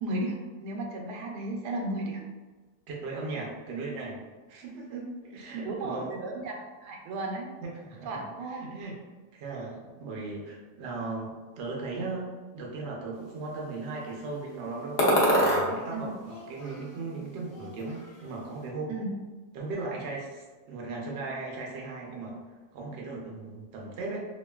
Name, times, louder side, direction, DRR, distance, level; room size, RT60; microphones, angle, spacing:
voice 1, 0.0-2.2 5.6-7.5 8.1-8.7 15.9-16.1 18.9-19.1, right 2 dB, 85° right, 0 dB, 1.1 m, -34 dB
voice 2, 2.9-4.2 4.5-6.1 7.6-9.0 9.3-15.0 15.3-19.0 19.5-22.4 22.7-24.3, right 3 dB, 65° right, -2 dB, 0.6 m, -37 dB
sound 1, 15.0-15.7 16.2-17.2 17.5-18.3, equal, 60° left, 0.7 m, -26 dB
2.9 x 2.4 x 2.2 m, 1.3 s
omnidirectional pair, 1.7 m